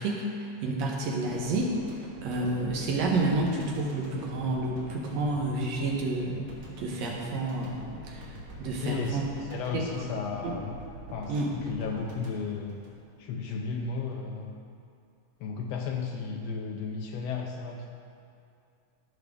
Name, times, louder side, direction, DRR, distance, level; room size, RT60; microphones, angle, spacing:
voice 1, 0.0-1.7 2.2-6.5 6.8-8.3 8.6-9.2 9.7-9.8 10.4-10.5 11.3-11.5, right 2 dB, 70° right, -1 dB, 2.0 m, -29 dB
sound 1, 1.3-13.5 13.8-13.9, equal, 50° right, 2.3 m, -45 dB
voice 2, 8.8-10.8 11.1-12.8 13.2-14.6 15.4-17.9, left 5 dB, 90° left, 1 dB, 1.4 m, -34 dB
15.0 x 6.2 x 3.5 m, 2.5 s
omnidirectional pair, 3.5 m